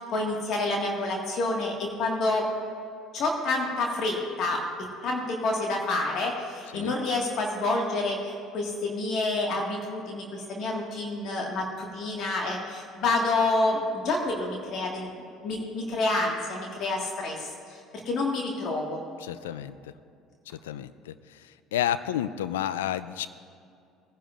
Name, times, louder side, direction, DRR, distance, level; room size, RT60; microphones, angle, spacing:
voice 1, 0.1-2.5 3.1-4.6 5.0-17.8 18.1-19.0, left 2 dB, 60° left, 0 dB, 1.7 m, -28 dB
voice 2, 19.2-19.8 20.6-21.4 21.7-23.3, left 11 dB, 85° left, 14 dB, 0.4 m, -30 dB
19.0 x 10.5 x 2.5 m, 2.4 s
hypercardioid pair, 65°, 0 cm